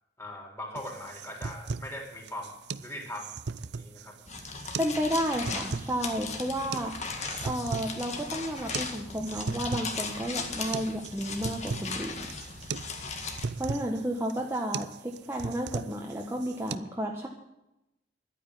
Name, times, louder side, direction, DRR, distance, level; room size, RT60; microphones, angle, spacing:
voice 1, 0.2-2.5 2.8-4.2, left 1 dB, 15° left, 1 dB, 4.0 m, -40 dB
sound 1, 0.8-16.8, right 4 dB, 70° right, 0.6 m, -38 dB
sound 2, 4.2-13.4, left 4 dB, 40° left, 2.0 m, -37 dB
voice 2, 4.8-6.9 7.4-12.3 13.6-17.3, equal, 15° right, 0 dB, 1.4 m, -32 dB
11.5 x 9.4 x 9.9 m, 0.88 s
head